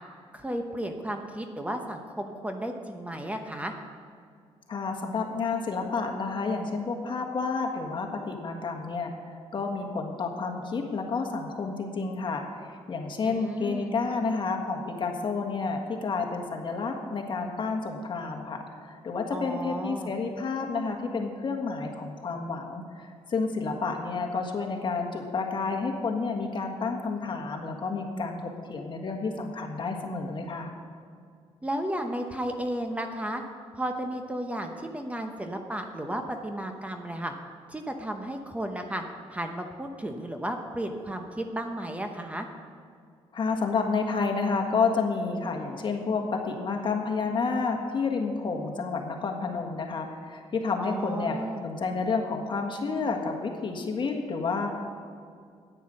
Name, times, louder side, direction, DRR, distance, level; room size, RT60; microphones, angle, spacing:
voice 1, 0.3-3.7 13.2-13.9 19.3-20.1 31.6-33.4 33.7-37.3 37.7-39.0 39.3-42.5 50.8-51.7, right 1 dB, 10° right, 5 dB, 0.9 m, -33 dB
voice 2, 4.7-9.1 9.5-30.7 43.3-51.4 51.6-54.8, left 4 dB, 45° left, 3 dB, 1.5 m, -30 dB
10.0 x 9.2 x 6.4 m, 2.3 s
cardioid pair, 105°, 11 cm